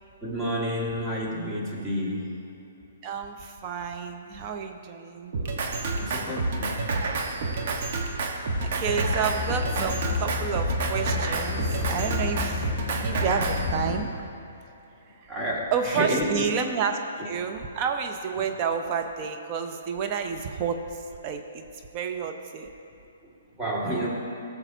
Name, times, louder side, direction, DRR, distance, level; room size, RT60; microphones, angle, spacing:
voice 1, 0.2-2.3 5.9-6.8 15.3-16.5 17.2-17.3 23.6-24.1, equal, 15° right, -5 dB, 1.9 m, -29 dB
voice 2, 3.0-5.3 8.6-12.7 13.0-14.2 15.7-17.0 17.2-20.8 21.2-21.7 21.9-22.7, right 6 dB, 35° right, 5 dB, 0.7 m, -30 dB
Drum kit, 5.3-13.7, right 3 dB, 55° right, 1.2 m, -29 dB
sound 1, 8.5-14.0, left 5 dB, 10° left, 2.1 m, -32 dB
17.0 x 7.0 x 2.7 m, 2.9 s
hypercardioid pair, 140°, 0 cm